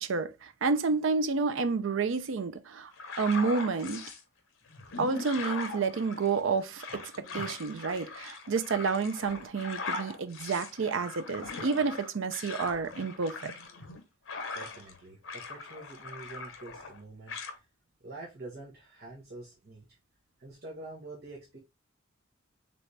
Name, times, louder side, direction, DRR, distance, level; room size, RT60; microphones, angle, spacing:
voice 1, 0.0-2.9 3.2-4.0 5.0-13.5, right 4 dB, 75° right, 0.5 m, -30 dB
sound 1, 2.9-4.2 4.7-15.0 15.2-17.0 17.3-17.5, left 3 dB, 90° left, 0.9 m, -40 dB
voice 2, 14.5-17.7 18.0-19.9 20.4-21.6, right 2 dB, 50° right, 1.1 m, -46 dB
4.0 x 3.4 x 3.2 m
head